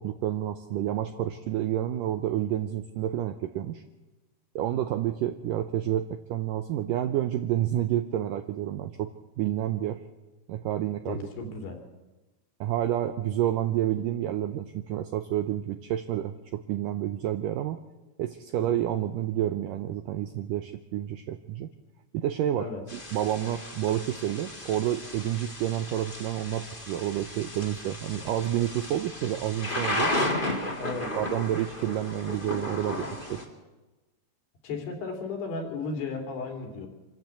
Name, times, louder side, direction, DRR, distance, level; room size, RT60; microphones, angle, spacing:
voice 1, 0.0-3.8 4.6-9.1 9.4-10.0 10.5-11.2 11.4-11.5 12.6-17.8 18.2-21.7 22.1-30.1 31.0-33.4, right 12 dB, 80° right, 8 dB, 1.9 m, -29 dB
voice 2, 11.0-11.8 14.4-14.5 18.6-18.8 22.6-22.8 30.8-31.1 34.6-36.9, left 4 dB, 75° left, 3 dB, 5.1 m, -35 dB
Thunder / Rain, 22.9-33.4, left 1 dB, 20° left, 1.5 m, -34 dB
26.0 x 12.5 x 8.4 m, 1.1 s
omnidirectional pair, 4.8 m